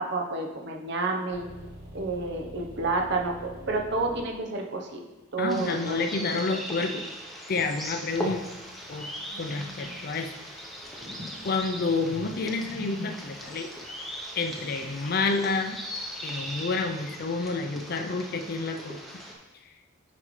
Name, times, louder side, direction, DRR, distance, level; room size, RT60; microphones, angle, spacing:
voice 1, 0.0-1.5 1.9-5.0 5.3-6.3, right 3 dB, 55° right, 1 dB, 0.9 m, -30 dB
sound 1, 1.3-6.4, equal, 90° right, 2.0 m, -46 dB
voice 2, 5.4-7.1 7.5-8.5 8.9-9.1 9.4-10.3 11.4-13.7 14.4-15.8 16.2-19.0, left 3 dB, 45° left, 7 dB, 0.5 m, -29 dB
sound 2, 5.5-19.3, equal, ahead, 0.8 m, -39 dB
sound 3, 8.0-16.6, left 1 dB, 35° right, 1.2 m, -46 dB
8.8 x 5.2 x 3.2 m, 1.1 s
head